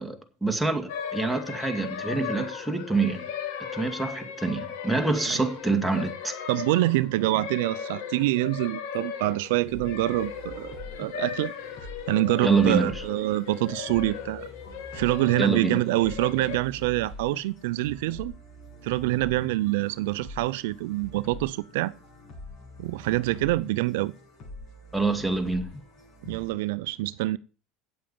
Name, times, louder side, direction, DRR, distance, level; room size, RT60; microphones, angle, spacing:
voice 1, 0.0-3.3 3.7-6.4 12.4-13.0 15.4-15.8 24.9-25.7, right 3 dB, 5° right, 2.1 m, -26 dB
sound 1, 0.9-16.6, left 8 dB, 75° left, 2.2 m, -37 dB
voice 2, 6.5-11.5 12.1-14.5 14.9-18.3 18.8-21.9 22.8-24.1 26.2-27.4, right 18 dB, 80° right, 0.4 m, -26 dB
sound 2, 9.7-26.5, left 1 dB, 50° left, 7.1 m, -45 dB
8.9 x 7.6 x 7.1 m
supercardioid pair, 95°, 0 cm